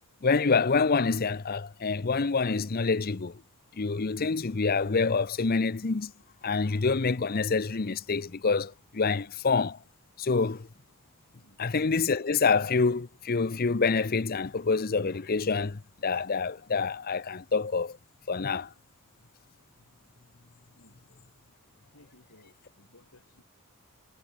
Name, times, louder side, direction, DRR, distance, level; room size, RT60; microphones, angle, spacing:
voice 1, 0.2-3.4 3.8-6.1 6.4-9.8 10.2-10.7 11.6-18.0 18.3-18.7, left 4 dB, 40° left, 0.6 m, -27 dB
voice 2, 21.9-23.4, left 1 dB, 80° left, 7.7 m, -59 dB
head